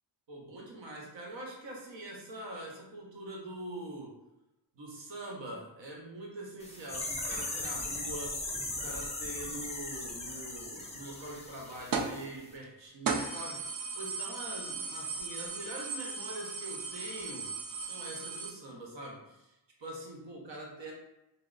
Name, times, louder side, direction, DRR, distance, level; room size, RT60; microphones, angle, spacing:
voice 1, 0.3-4.2 4.7-20.9, right 1 dB, 75° right, -1 dB, 1.0 m, -44 dB
sound 1, 6.6-12.2 12.5-12.6, left 2 dB, 15° left, 0.4 m, -38 dB
sound 2, 11.9-12.2 12.6-12.7 13.1-18.5, right 4 dB, 50° right, 0.6 m, -36 dB
3.1 x 2.0 x 3.8 m, 0.93 s
wide cardioid pair, 105°, 45 cm